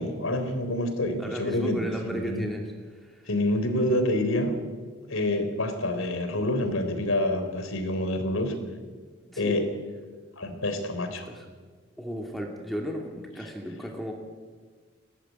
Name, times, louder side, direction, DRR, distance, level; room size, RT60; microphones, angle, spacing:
voice 1, 0.0-2.5 3.3-4.5 5.1-8.5 9.4-9.7 10.4-11.3 13.4-13.5, left 1 dB, 85° left, 7 dB, 3.8 m, -27 dB
voice 2, 1.2-2.6 2.9-3.3 9.2-9.6 11.3-11.5 12.0-14.1, equal, ahead, 1 dB, 2.5 m, -35 dB
21.0 x 17.5 x 9.4 m, 1.5 s
head